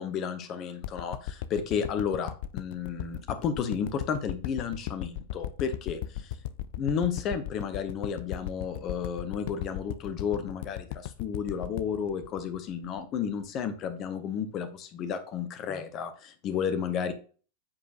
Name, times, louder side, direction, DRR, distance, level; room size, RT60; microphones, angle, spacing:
voice 1, 0.0-6.3 6.8-17.1, left 7 dB, 35° left, 10 dB, 0.7 m, -32 dB
sound 1, 0.8-13.2 13.6-13.7, left 11 dB, 50° left, 0.4 m, -37 dB
8.6 x 4.6 x 2.5 m, 0.39 s
figure-of-eight pair, 90°, 0 cm